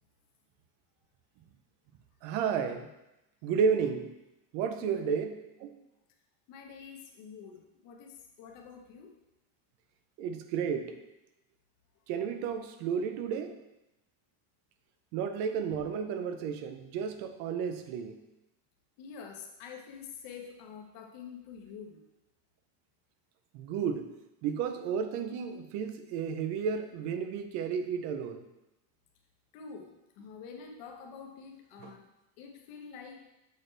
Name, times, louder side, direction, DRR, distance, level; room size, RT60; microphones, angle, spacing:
voice 1, 2.2-2.9 3.4-4.1 4.5-5.3 5.6-5.7 10.2-11.0 12.1-13.5 15.1-18.2 23.5-24.1 24.4-28.4 31.8-31.9, right 6 dB, 40° right, 8 dB, 0.5 m, -32 dB
voice 2, 6.5-9.1 19.0-22.0 29.5-32.1 32.4-33.2, left 6 dB, 45° left, 2 dB, 1.1 m, -47 dB
6.7 x 6.0 x 3.3 m, 0.93 s
cardioid pair, 175°, 45 cm